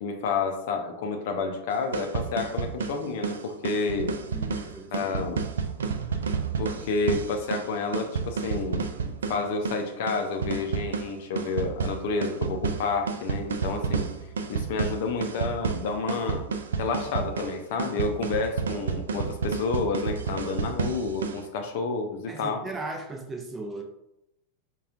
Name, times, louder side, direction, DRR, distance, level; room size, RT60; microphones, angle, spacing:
voice 1, 0.0-4.2 4.9-5.4 6.6-8.9 9.3-14.1 14.5-16.4 16.8-22.6, left 4 dB, 50° left, 4 dB, 0.5 m, -30 dB
sound 1, 1.7-21.5, right 5 dB, 65° right, 0.3 m, -31 dB
voice 2, 4.3-4.9 22.3-23.8, right 2 dB, 15° right, 3 dB, 0.6 m, -37 dB
5.4 x 2.3 x 2.4 m, 0.84 s
figure-of-eight pair, 90°, 0 cm